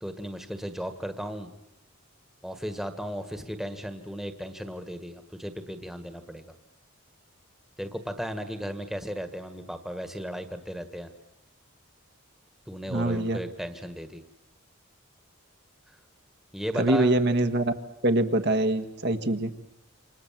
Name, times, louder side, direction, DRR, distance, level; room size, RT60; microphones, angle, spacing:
voice 1, 0.0-1.5 2.4-6.5 7.8-11.1 12.7-14.2 16.5-17.1, equal, ahead, 8 dB, 1.6 m, -35 dB
voice 2, 12.9-13.4 16.7-17.7 18.0-19.5, right 1 dB, 55° right, 6 dB, 1.5 m, -24 dB
28.5 x 26.0 x 7.6 m, 0.88 s
head